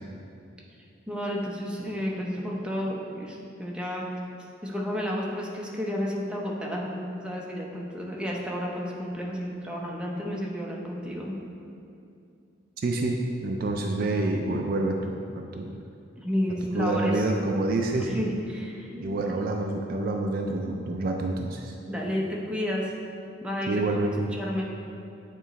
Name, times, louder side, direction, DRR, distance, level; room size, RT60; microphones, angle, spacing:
voice 1, 1.1-4.2 4.6-11.4 16.2-17.2 17.9-19.1 21.9-22.9 23.4-23.8 24.3-24.6, equal, 5° right, -3 dB, 0.6 m, -31 dB
voice 2, 12.8-15.7 16.7-18.2 19.0-21.7 23.7-24.3, right 2 dB, 50° right, 2 dB, 0.3 m, -27 dB
8.5 x 3.0 x 4.0 m, 2.6 s
head